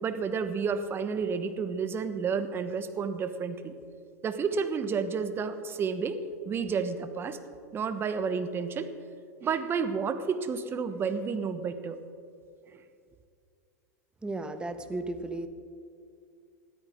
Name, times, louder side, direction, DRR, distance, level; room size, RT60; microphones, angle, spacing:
voice 1, 0.0-3.7 4.2-6.2 6.4-7.4 7.7-8.9 9.4-12.0 12.7-12.8, right 5 dB, 25° right, 10 dB, 1.1 m, -31 dB
voice 2, 14.2-15.5, right 2 dB, 10° right, 9 dB, 1.1 m, -34 dB
20.0 x 13.5 x 3.7 m, 2.3 s
hypercardioid pair, 95°, 9 cm